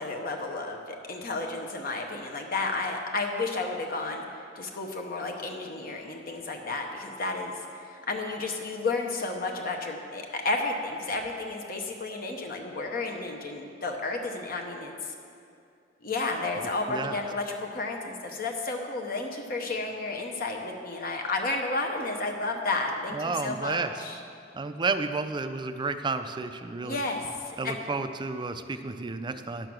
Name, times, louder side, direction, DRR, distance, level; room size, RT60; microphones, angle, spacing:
voice 1, 0.0-15.1 16.0-24.2 26.8-27.8, left 3 dB, 50° left, 2 dB, 0.9 m, -32 dB
voice 2, 23.1-23.9 24.5-27.0 27.6-29.7, right 3 dB, 25° right, 9 dB, 0.4 m, -31 dB
10.5 x 6.7 x 6.0 m, 2.5 s
head